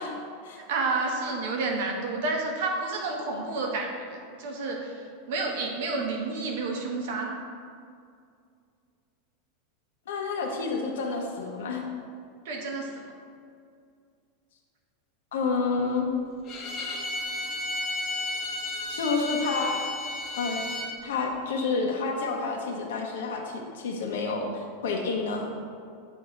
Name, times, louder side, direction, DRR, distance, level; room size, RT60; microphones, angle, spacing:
voice 1, 0.0-0.6 10.1-11.8 15.3-16.1 18.9-19.8 20.4-20.6 21.0-25.5, left 4 dB, 85° left, 0 dB, 0.7 m, -29 dB
voice 2, 0.6-7.4 12.4-13.1, right 3 dB, 60° right, 1 dB, 1.0 m, -30 dB
Bowed string instrument, 16.5-20.9, left 2 dB, 25° left, 0.8 m, -33 dB
7.6 x 2.7 x 4.8 m, 2.3 s
supercardioid pair, 170°, 0 cm